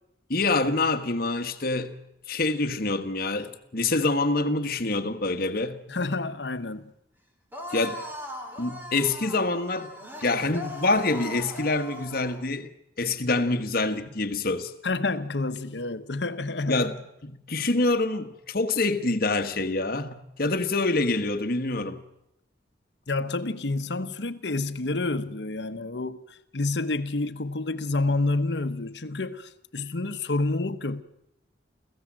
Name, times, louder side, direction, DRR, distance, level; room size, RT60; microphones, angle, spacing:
voice 1, 0.3-2.0 2.3-5.8 7.7-8.0 8.6-9.9 10.2-12.7 13.0-14.7 16.7-17.0 17.2-22.0, left 2 dB, 55° left, 1.6 m, -26 dB
voice 2, 5.9-6.9 14.8-17.0 23.1-31.0, left 2 dB, 70° left, 1.1 m, -29 dB
sound 1, 7.5-12.4, left 1 dB, 10° right, 3.3 m, -39 dB
28.5 x 15.5 x 7.6 m
head